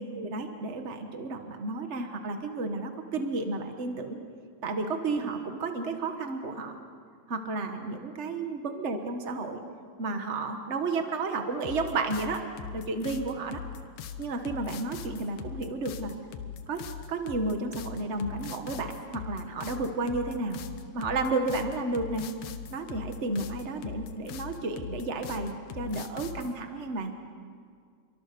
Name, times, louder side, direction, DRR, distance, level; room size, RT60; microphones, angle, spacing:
voice 1, 0.0-4.2 4.6-6.8 7.3-9.6 10.0-12.5 12.7-13.6 14.2-16.1 16.7-20.6 20.9-22.3 22.7-27.1, right 3 dB, 55° right, 6 dB, 0.7 m, -32 dB
sound 1, 11.6-26.5, left 8 dB, 90° left, 2.7 m, -40 dB
28.5 x 23.5 x 6.9 m, 2.1 s
omnidirectional pair, 3.5 m